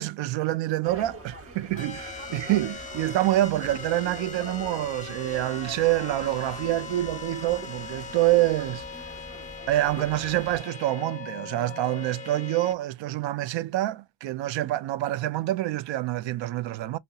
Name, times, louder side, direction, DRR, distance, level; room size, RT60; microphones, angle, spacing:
voice 1, 0.0-9.0 9.7-17.0, right 15 dB, 70° right, 0.5 m, -26 dB
sound 1, 0.8-10.6, right 2 dB, 30° right, 0.9 m, -44 dB
sound 2, 1.8-12.7, left 5 dB, 15° left, 0.6 m, -40 dB
2.8 x 2.1 x 3.7 m
cardioid pair, 135°, 48 cm